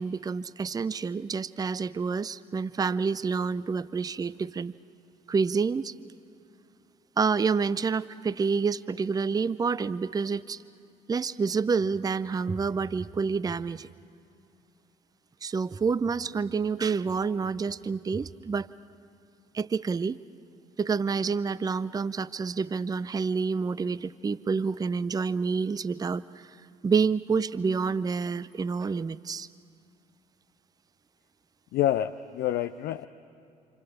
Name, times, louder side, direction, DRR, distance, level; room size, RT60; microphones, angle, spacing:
voice 1, 0.0-4.8 5.3-5.9 7.2-10.6 11.1-13.9 15.4-18.7 19.5-20.2 20.8-26.5 26.8-29.5, right 5 dB, 20° right, 18 dB, 0.6 m, -28 dB
voice 2, 31.7-33.1, left 12 dB, 55° left, 9 dB, 0.6 m, -27 dB
29.5 x 27.5 x 7.2 m, 2.6 s
figure-of-eight pair, 45°, 19 cm